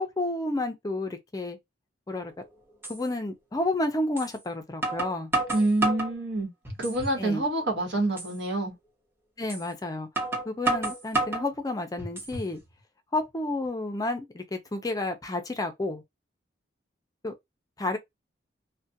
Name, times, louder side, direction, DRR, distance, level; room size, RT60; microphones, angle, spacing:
voice 1, 0.0-1.6 2.1-2.3 2.9-5.3 7.2-7.4 9.4-10.1 10.5-12.6 13.1-16.0 17.2-17.3 17.8-18.0, left 2 dB, 20° left, 0.4 m, -30 dB
sound 1, 2.2-2.3 2.8-3.0 4.2-4.3 4.8-6.1 6.7-7.2 7.6-7.7 8.2-8.3 9.5-9.6 10.2-11.5 12.0-12.5, right 2 dB, 15° right, 1.0 m, -29 dB
voice 2, 5.5-6.5 6.8-8.7, right 2 dB, 70° right, 1.1 m, -27 dB
2.4 x 2.1 x 2.6 m
head